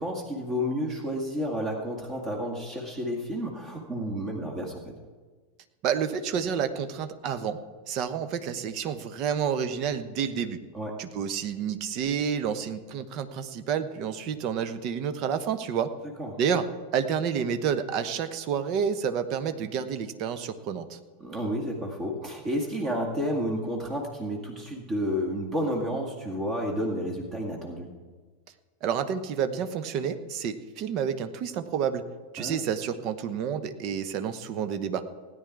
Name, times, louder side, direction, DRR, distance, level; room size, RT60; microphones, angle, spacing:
voice 1, 0.0-4.8 10.7-10.9 16.2-16.4 21.2-27.9 32.4-32.6, equal, 25° right, 0 dB, 2.0 m, -31 dB
voice 2, 5.8-7.6 7.9-10.6 11.0-15.9 16.4-16.7 16.9-21.0 28.8-32.0 32.3-35.1, right 7 dB, 40° right, 10 dB, 0.9 m, -29 dB
17.0 x 9.7 x 4.7 m, 1.4 s
figure-of-eight pair, 90°, 0 cm